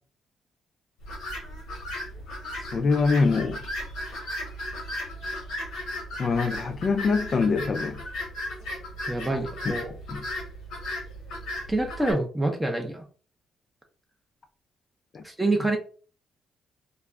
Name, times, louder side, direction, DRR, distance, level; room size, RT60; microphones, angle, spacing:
sound 1, 1.0-12.1, left 1 dB, 85° left, 1.0 m, -36 dB
voice 1, 2.7-3.6 6.2-8.0 9.3-9.7 10.1-10.2 15.1-15.2, left 4 dB, 45° left, 0.5 m, -24 dB
voice 2, 9.1-9.9 11.7-13.0 15.2-15.8, right 2 dB, 10° right, 0.5 m, -26 dB
2.4 x 2.0 x 3.4 m
cardioid pair, 90°, 0 cm